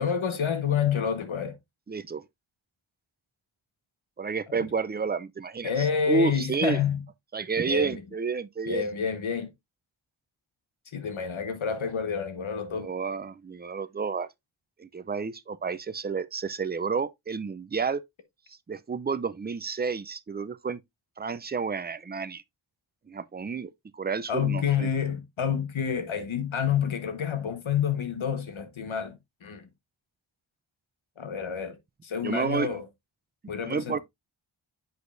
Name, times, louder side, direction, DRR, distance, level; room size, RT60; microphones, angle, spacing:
voice 1, 0.0-1.5 5.6-7.0 7.7-8.0 8.7-9.5 10.9-12.9 24.3-29.7 31.2-31.8 32.0-32.8 33.5-34.0, left 7 dB, 80° left, 1.3 m, -28 dB
voice 2, 1.9-2.2 4.2-6.8 7.3-8.9 12.7-14.3 14.8-18.0 18.5-20.8 21.2-22.4 23.1-24.9 32.2-32.7 33.6-34.0, right 5 dB, 20° right, 0.4 m, -30 dB
8.0 x 5.1 x 2.6 m
wide cardioid pair, 80°, 47 cm